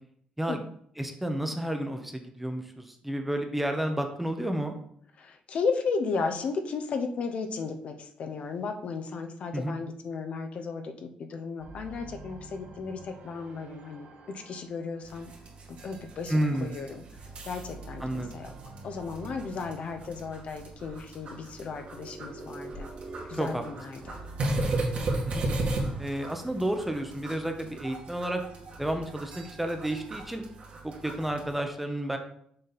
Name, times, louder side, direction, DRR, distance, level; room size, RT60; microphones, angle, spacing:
voice 1, 1.0-4.8 9.5-9.8 16.3-16.8 18.0-18.5 23.3-23.6 25.3-25.5 26.0-28.4 28.8-30.4 30.8-32.2, right 1 dB, 5° right, 5 dB, 0.8 m, -31 dB
voice 2, 5.2-15.3 15.7-17.0 17.5-18.5 18.8-22.9 23.3-24.2, left 4 dB, 55° left, 5 dB, 0.7 m, -34 dB
sound 1, 11.6-16.6 16.9-22.2 23.0-29.0, right 3 dB, 70° right, 1.1 m, -49 dB
sound 2, 15.0-31.6, right 2 dB, 55° right, 1.9 m, -37 dB
sound 3, 21.4-25.2, right 2 dB, 90° right, 2.5 m, -46 dB
6.6 x 4.1 x 4.1 m, 0.66 s
cardioid pair, 120°, 3 cm